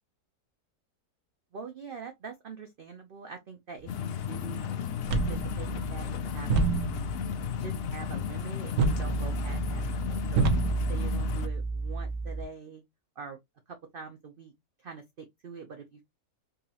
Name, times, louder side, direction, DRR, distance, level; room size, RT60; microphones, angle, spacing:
voice 1, 1.5-4.7 5.1-7.1 7.5-12.8 13.2-13.4 13.7-14.5 14.8-16.0, right 5 dB, 55° right, 0.6 m, -44 dB
sound 1, 3.9-11.5, left 8 dB, 85° left, 0.5 m, -34 dB
sound 2, 5.0-12.4, right 3 dB, 75° right, 1.2 m, -30 dB
3.8 x 2.9 x 2.8 m
omnidirectional pair, 1.6 m